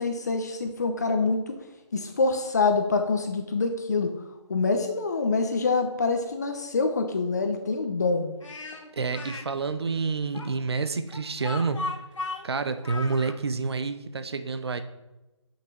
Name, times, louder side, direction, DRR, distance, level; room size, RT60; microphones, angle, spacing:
voice 1, 0.0-1.6 1.9-4.1 4.5-8.3, left 3 dB, 35° left, 6 dB, 0.8 m, -25 dB
Speech, 8.4-9.5 10.3-13.3, left 3 dB, 85° left, 2.0 m, -36 dB
voice 2, 8.9-11.8 12.4-14.8, right 4 dB, 55° right, 10 dB, 0.8 m, -28 dB
8.4 x 6.0 x 6.1 m, 1.0 s
hypercardioid pair, 170°, 16 cm